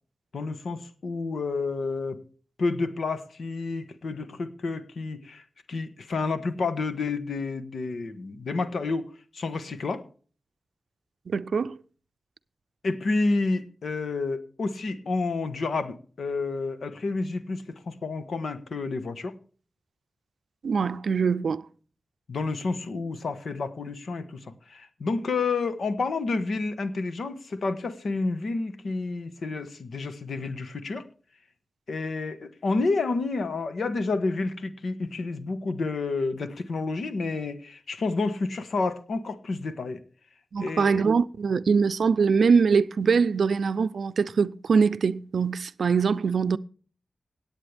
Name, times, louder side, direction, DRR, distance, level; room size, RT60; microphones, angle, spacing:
voice 1, 0.3-2.2 2.6-5.4 5.7-10.0 12.8-19.3 22.3-24.4 24.7-31.1 31.9-40.0 40.6-41.0, left 3 dB, 80° left, 1.3 m, -30 dB
voice 2, 11.3-11.8 20.6-21.6 40.5-46.6, right 5 dB, 85° right, 0.5 m, -23 dB
18.0 x 8.8 x 3.4 m
wide cardioid pair, 120°, 0 cm